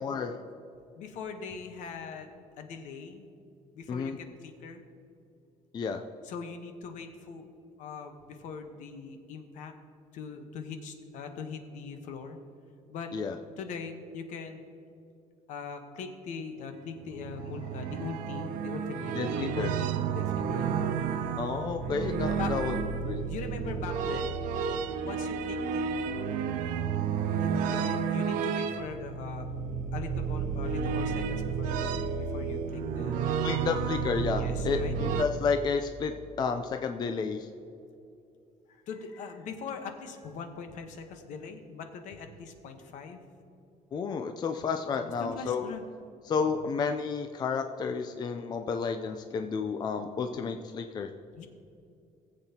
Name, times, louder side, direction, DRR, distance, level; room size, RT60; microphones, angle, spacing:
voice 1, 0.0-0.3 3.9-4.2 5.7-6.0 13.1-13.3 19.1-19.7 21.4-22.8 23.0-23.2 33.4-36.1 36.4-37.5 43.9-45.7 46.3-51.1, left 5 dB, 30° left, 6 dB, 0.4 m, -31 dB
voice 2, 1.0-3.3 3.7-4.8 6.2-7.4 7.8-9.7 10.1-12.4 12.9-13.1 13.6-14.6 15.5-20.7 22.3-22.5 23.3-24.3 25.0-26.1 27.4-29.5 29.9-33.4 34.3-34.9 38.7-43.2 45.2-45.8 51.4-51.5, left 5 dB, 65° left, 6 dB, 1.1 m, -41 dB
sound 1, 17.0-35.3, right 6 dB, 80° right, 0.6 m, -31 dB
19.0 x 7.9 x 2.9 m, 2.6 s
cardioid pair, 150°, 14 cm